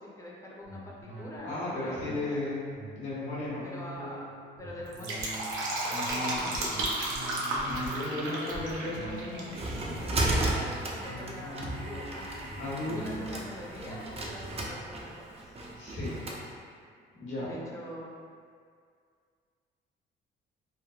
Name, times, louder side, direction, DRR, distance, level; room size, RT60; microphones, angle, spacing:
voice 1, 0.0-2.5 3.6-4.2 4.6-5.3 6.1-6.8 8.1-8.6 10.3-12.5 12.9-15.5 17.4-18.1, left 1 dB, 15° left, -5 dB, 0.6 m, -44 dB
sound 1, 0.6-16.4 16.8-16.9, right 1 dB, 55° right, 0.9 m, -45 dB
voice 2, 1.4-2.7 2.9-3.6 5.9-6.6 7.7-10.1 12.6-13.0 15.7-16.2 17.2-17.5, left 2 dB, 70° left, -9 dB, 1.1 m, -35 dB
Fill (with liquid), 4.8-9.6 9.9-10.0, right 1 dB, 80° right, 0.5 m, -33 dB
sound 2, 9.0-16.4, right 1 dB, 30° right, 0.4 m, -34 dB
3.2 x 2.0 x 2.3 m, 2.1 s
cardioid pair, 90°, 20 cm